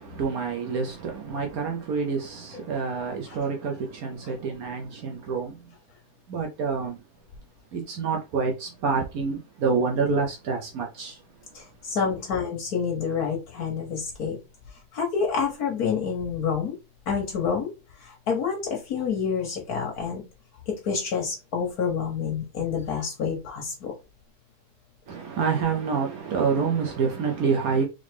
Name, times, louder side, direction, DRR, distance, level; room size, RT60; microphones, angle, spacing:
voice 1, 0.0-5.7 6.3-7.0 7.7-11.2 25.1-27.8, right 5 dB, 70° right, 1.2 m, -27 dB
voice 2, 11.5-14.4 14.9-16.7 17.1-17.7 18.0-20.2 20.8-23.9, left 6 dB, 75° left, 1.5 m, -28 dB
3.8 x 3.4 x 3.4 m
omnidirectional pair, 1.6 m